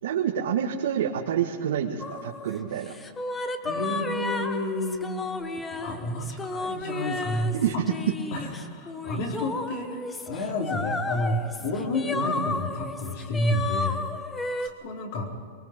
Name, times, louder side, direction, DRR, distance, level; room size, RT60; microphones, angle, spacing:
voice 1, 0.0-2.9 7.6-8.1, right 9 dB, 85° right, -1 dB, 1.9 m, -27 dB
sound 1, 2.0-14.7, left 3 dB, 10° left, 0.9 m, -33 dB
voice 2, 3.6-5.3 5.5-7.8 8.3-14.1 14.6-15.3, left 1 dB, 45° left, 1 dB, 4.3 m, -30 dB
24.0 x 22.5 x 5.4 m, 2.1 s
supercardioid pair, 165°, 0 cm